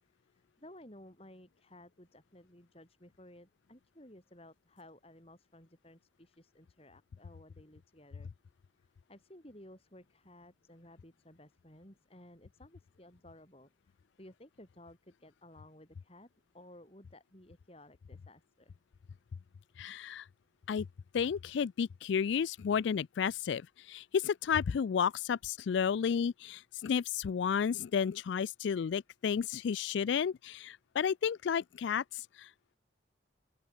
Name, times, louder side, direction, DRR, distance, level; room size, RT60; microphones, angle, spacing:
voice 1, 0.2-8.3 8.8-16.3 16.5-18.7, left 1 dB, 30° left, 5.0 m, -56 dB
voice 2, 19.8-20.2 20.7-20.9 21.1-23.6 23.9-32.5, left 7 dB, 70° left, 0.3 m, -32 dB
open air
head